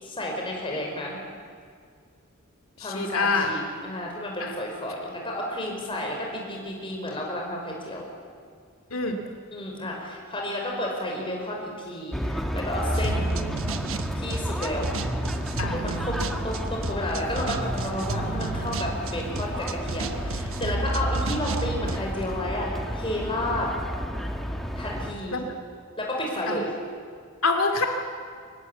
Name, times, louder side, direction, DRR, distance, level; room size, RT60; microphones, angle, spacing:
voice 1, 0.0-1.2 2.8-8.1 9.5-13.4 14.2-14.9 15.6-23.7 24.8-25.4 26.0-26.7, left 1 dB, 25° left, -1 dB, 5.4 m, -31 dB
voice 2, 2.8-3.5 4.4-4.5 8.9-9.2 15.6-15.8 25.3-25.4 26.5-26.6 27.4-27.9, left 3 dB, 90° left, 4 dB, 2.4 m, -25 dB
sound 1, 12.1-25.1, equal, ahead, 1.6 m, -31 dB
sound 2, 12.9-22.0, right 2 dB, 75° right, 1.1 m, -32 dB
24.5 x 19.5 x 8.4 m, 2.1 s
head